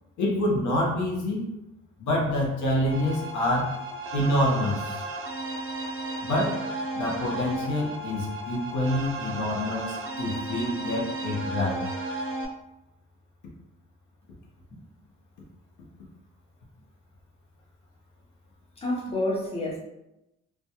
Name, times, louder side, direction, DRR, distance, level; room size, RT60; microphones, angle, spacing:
voice 1, 0.2-1.5 2.0-3.8 4.1-5.0 6.2-6.6 6.9-11.8, left 1 dB, 75° left, -2 dB, 0.7 m, -27 dB
sound 1, 2.9-12.5, right 2 dB, 45° right, 0.5 m, -34 dB
voice 2, 18.8-19.8, left 1 dB, 20° left, -4 dB, 0.7 m, -28 dB
2.2 x 2.2 x 2.8 m, 0.90 s
cardioid pair, 90°, 30 cm